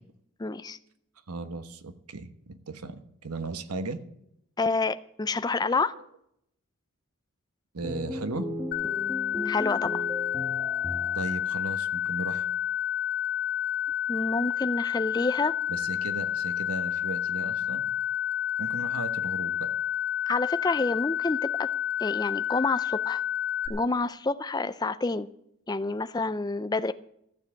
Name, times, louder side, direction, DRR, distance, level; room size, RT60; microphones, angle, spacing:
voice 1, 0.4-0.8 4.6-6.0 9.5-10.0 14.1-15.6 20.3-21.7 22.0-23.2 23.7-25.3 25.7-26.9, left 3 dB, 15° left, 13 dB, 0.4 m, -28 dB
voice 2, 1.3-4.0 5.9-6.0 7.7-8.5 11.1-12.5 15.7-17.9 18.6-19.7, right 3 dB, 90° right, 10 dB, 1.2 m, -36 dB
sound 1, 7.8-11.5, left 1 dB, 5° right, 1.6 m, -36 dB
sound 2, 8.7-23.7, left 11 dB, 45° left, 1.6 m, -30 dB
14.5 x 7.4 x 7.6 m, 0.74 s
head